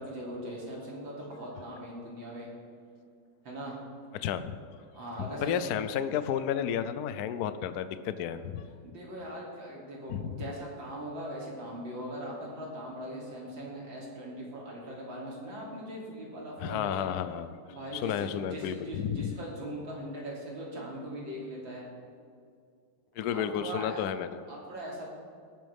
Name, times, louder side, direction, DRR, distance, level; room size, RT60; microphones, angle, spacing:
voice 1, 0.0-2.5 3.4-3.8 4.9-5.7 8.8-17.1 17.7-21.9 23.3-24.0 24.5-25.0, right 1 dB, 75° right, -4 dB, 3.7 m, -40 dB
voice 2, 4.1-4.6 5.2-8.7 10.1-10.4 16.6-17.5 17.9-19.4 23.2-24.4, left 9 dB, 70° left, 12 dB, 1.0 m, -32 dB
18.5 x 11.0 x 3.5 m, 2.3 s
omnidirectional pair, 2.2 m